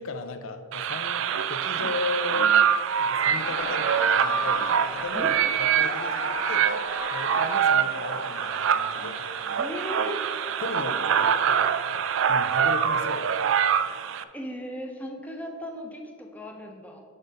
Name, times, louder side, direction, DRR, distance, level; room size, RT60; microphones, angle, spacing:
voice 1, 0.0-2.5 3.0-6.7 7.1-9.2 10.6-11.7 11.9-13.5, left 3 dB, 80° left, 8 dB, 0.6 m, -36 dB
sound 1, 0.7-14.2, right 8 dB, 70° right, 0.3 m, -25 dB
Laughter, 3.0-10.7, left 1 dB, 60° left, 1.2 m, -37 dB
voice 2, 9.6-10.3 10.8-11.3 14.3-17.0, equal, 5° left, 2 dB, 0.6 m, -37 dB
6.5 x 5.2 x 5.2 m, 2.1 s
head